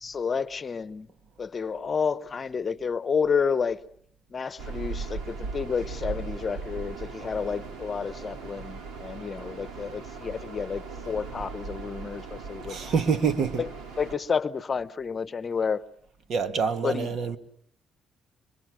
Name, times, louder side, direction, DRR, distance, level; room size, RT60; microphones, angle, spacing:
voice 1, 0.0-1.1 1.4-3.8 4.3-12.9 13.6-13.7 14.0-15.8 16.8-17.1, left 6 dB, 40° left, 0.9 m, -30 dB
sound 1, 4.6-14.2, right 4 dB, 80° right, 2.9 m, -38 dB
voice 2, 12.7-13.6 16.3-17.4, right 6 dB, 65° right, 1.7 m, -26 dB
25.5 x 23.0 x 6.3 m
cardioid pair, 90°, 0 cm